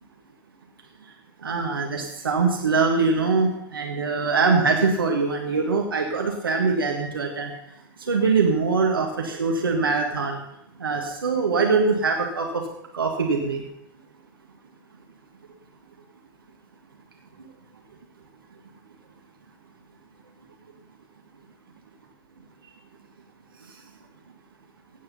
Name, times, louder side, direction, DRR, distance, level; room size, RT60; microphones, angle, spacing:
voice 1, 1.4-7.5 8.0-10.4 10.8-12.6 12.9-13.6, right 4 dB, 85° right, 2 dB, 2.0 m, -23 dB
17.0 x 8.7 x 5.6 m, 0.76 s
figure-of-eight pair, 95°, 11 cm